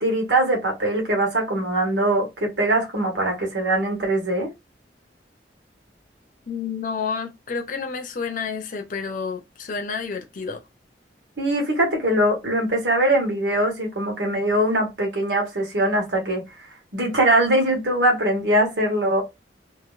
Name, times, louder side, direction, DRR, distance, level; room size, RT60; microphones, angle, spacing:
voice 1, 0.0-4.5 11.4-16.4 16.9-19.2, right 1 dB, 90° right, 1.7 m, -22 dB
voice 2, 6.5-10.6, left 5 dB, 50° left, 0.7 m, -30 dB
3.1 x 2.8 x 2.5 m
head